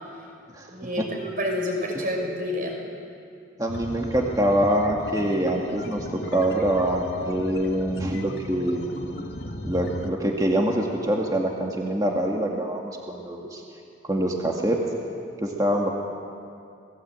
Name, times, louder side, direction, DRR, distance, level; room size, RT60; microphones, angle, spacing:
voice 1, 0.7-2.8, left 1 dB, 45° right, 1 dB, 6.0 m, -28 dB
voice 2, 3.6-6.1 6.3-9.0 9.6-13.6 14.0-14.8 15.4-15.9, right 1 dB, 20° right, 0 dB, 2.1 m, -25 dB
sound 1, 3.7-10.1, left 1 dB, 55° left, 1.9 m, -37 dB
28.5 x 19.5 x 8.9 m, 2.5 s
head